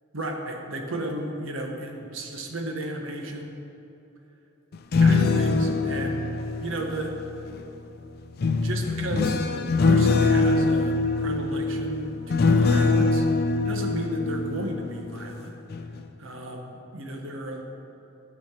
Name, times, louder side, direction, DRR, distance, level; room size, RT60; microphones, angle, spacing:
voice 1, 0.1-3.5 5.0-6.2 6.6-7.2 8.6-13.2 13.6-15.5 16.2-17.6, right 1 dB, 75° right, 2 dB, 1.0 m, -34 dB
sound 1, 4.7-7.6 8.4-15.3 15.7-16.0, left 3 dB, 50° left, 0.4 m, -23 dB
13.0 x 4.3 x 4.3 m, 2.9 s
head